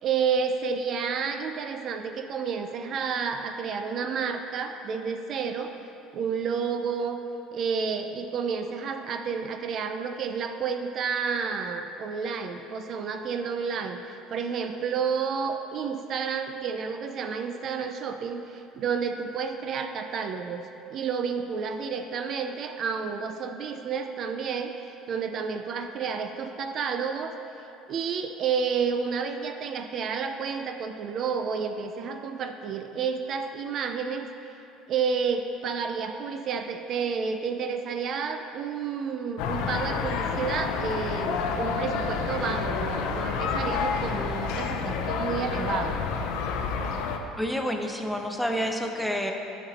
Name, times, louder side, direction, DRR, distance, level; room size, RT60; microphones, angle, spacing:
voice 1, 0.0-5.7 6.1-7.2 7.5-20.6 20.9-27.4 27.9-34.3 34.9-46.0, right 6 dB, 50° right, 6 dB, 0.4 m, -30 dB
sound 1, 39.4-47.2, left 5 dB, 75° left, 0.5 m, -29 dB
voice 2, 47.4-49.3, equal, 5° left, 3 dB, 0.6 m, -28 dB
9.7 x 4.2 x 4.1 m, 2.9 s
supercardioid pair, 100°, 0 cm